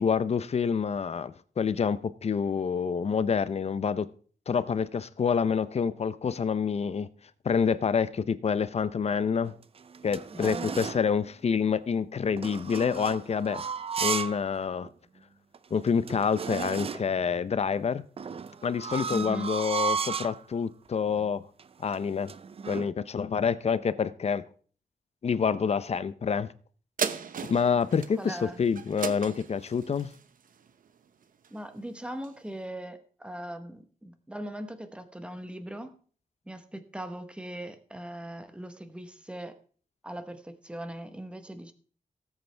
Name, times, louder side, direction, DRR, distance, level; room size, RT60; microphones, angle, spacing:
voice 1, 0.0-4.1 4.5-7.1 7.4-9.5 10.0-13.6 14.0-14.9 15.7-18.0 18.6-21.4 21.8-22.3 22.7-24.4 25.2-26.5 27.5-30.1, left 6 dB, 45° left, 0.6 m, -27 dB
sound 1, 9.4-11.1 12.4-14.4 14.8-14.9 15.5-15.6 15.8-17.2 18.2-20.4 21.1-21.3 21.6-22.9, right 6 dB, 40° right, 0.5 m, -34 dB
voice 2, 10.3-10.8 19.1-19.5 28.2-28.6 31.5-36.0 36.4-39.6 40.0-41.7, right 1 dB, 5° right, 1.1 m, -40 dB
sound 2, 27.0-31.7 32.2-32.3, right 7 dB, 70° right, 0.8 m, -37 dB
18.0 x 8.0 x 3.4 m
wide cardioid pair, 155°, 15 cm